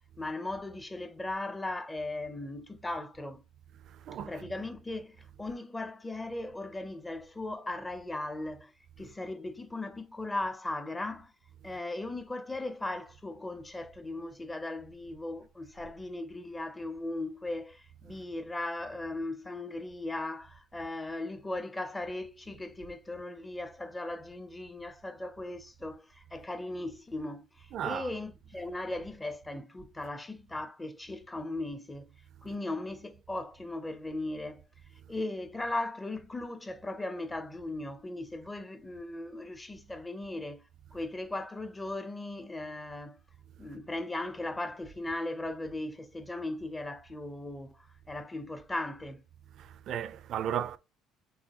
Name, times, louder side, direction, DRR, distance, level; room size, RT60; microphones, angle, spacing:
voice 1, 0.0-3.4 4.2-8.7 9.0-11.3 11.6-32.1 32.4-34.6 35.1-40.7 40.9-43.2 43.6-49.2, left 2 dB, 10° left, 0.6 m, -38 dB
voice 2, 3.8-4.7 18.1-18.2 27.7-28.1 49.5-50.8, right 10 dB, 50° right, 0.5 m, -36 dB
4.7 x 3.4 x 2.9 m
cardioid pair, 125°, 0 cm